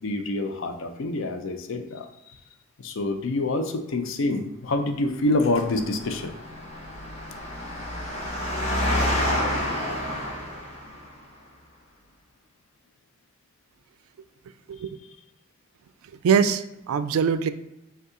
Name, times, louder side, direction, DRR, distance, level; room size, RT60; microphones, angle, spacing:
voice 1, 0.0-2.1 2.8-6.3, left 2 dB, 70° left, 6 dB, 0.5 m, -26 dB
Engine, 5.4-11.1, left 1 dB, 30° left, 0.8 m, -29 dB
voice 2, 16.2-17.5, right 6 dB, 85° right, 12 dB, 0.3 m, -22 dB
5.4 x 2.3 x 3.7 m, 0.90 s
head